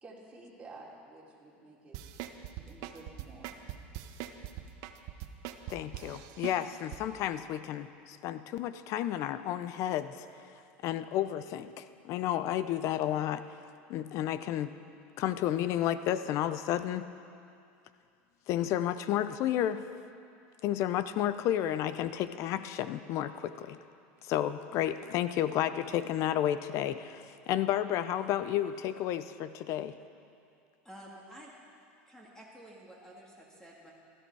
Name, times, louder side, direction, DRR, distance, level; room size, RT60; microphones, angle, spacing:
voice 1, 0.0-2.2 2.4-3.6, right 2 dB, 15° right, -5 dB, 3.3 m, -52 dB
sound 1, 1.9-7.0 7.4-7.5, right 13 dB, 60° right, 0.9 m, -42 dB
voice 2, 5.7-10.3 10.8-13.4 13.9-14.7 15.2-17.1 18.5-19.8 20.6-23.8 24.2-30.0, left 11 dB, 55° left, 13 dB, 0.6 m, -31 dB
voice 3, 30.8-31.5 32.1-33.9, equal, 10° left, -3 dB, 2.3 m, -51 dB
16.0 x 14.0 x 4.8 m, 2.5 s
supercardioid pair, 115°, 6 cm